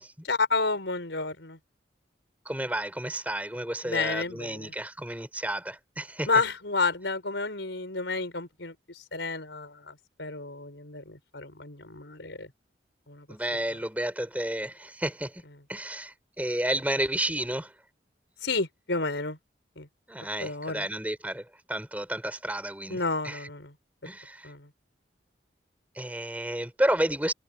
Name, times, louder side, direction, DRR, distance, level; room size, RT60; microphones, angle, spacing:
voice 1, 0.2-1.6 3.8-4.7 6.3-12.5 13.1-13.3 18.4-19.4 19.8-19.9 20.4-20.9 22.9-23.7 24.0-24.1 24.4-24.7, left 3 dB, 85° left, 4.6 m, -31 dB
voice 2, 2.5-6.3 13.3-15.4 15.7-17.7 20.1-23.4 24.0-24.5 26.0-27.3, right 1 dB, 10° right, 4.1 m, -31 dB
head